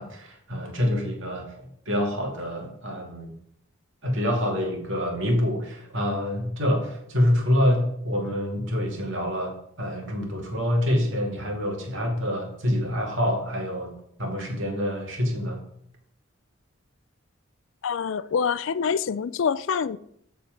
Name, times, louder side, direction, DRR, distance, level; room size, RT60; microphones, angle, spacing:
voice 1, 0.0-3.3 4.0-13.9 14.2-15.6, equal, 60° right, 2.3 m, -26 dB
voice 2, 17.8-20.0, left 6 dB, 60° left, 0.4 m, -26 dB
13.5 x 4.5 x 5.2 m
head